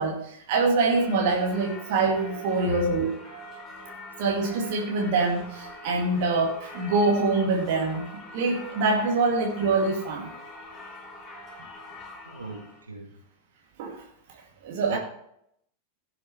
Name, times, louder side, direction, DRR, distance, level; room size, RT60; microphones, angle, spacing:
voice 1, 0.0-3.1 4.2-8.0 8.3-10.3 13.8-14.0 14.6-15.0, right 3 dB, 50° right, -1 dB, 1.9 m, -25 dB
Singing / Church bell, 0.9-12.8, left 1 dB, 20° left, 4.2 m, -44 dB
voice 2, 12.2-13.1 14.9-15.0, right 1 dB, 80° right, -1 dB, 2.6 m, -37 dB
16.5 x 6.4 x 3.3 m, 0.73 s
figure-of-eight pair, 90°, 0 cm